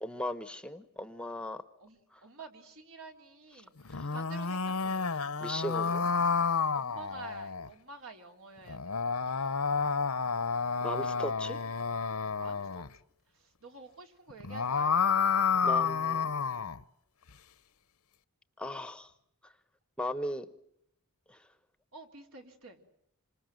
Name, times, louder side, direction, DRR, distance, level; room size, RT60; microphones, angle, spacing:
voice 1, 0.0-1.6 4.0-4.1 5.4-6.1 10.8-11.6 15.6-16.3 18.6-19.1 19.4-19.5 20.0-20.5 21.3-21.4, left 1 dB, 5° left, 11 dB, 1.1 m, -37 dB
voice 2, 1.8-5.1 6.0-6.2 6.7-9.0 12.4-12.8 13.3-15.5 21.9-22.8, right 3 dB, 65° right, 4 dB, 4.0 m, -50 dB
sound 1, 3.8-7.7 8.7-12.9 14.3-16.8, left 5 dB, 70° left, 1.0 m, -30 dB
27.5 x 26.0 x 7.8 m, 0.74 s
head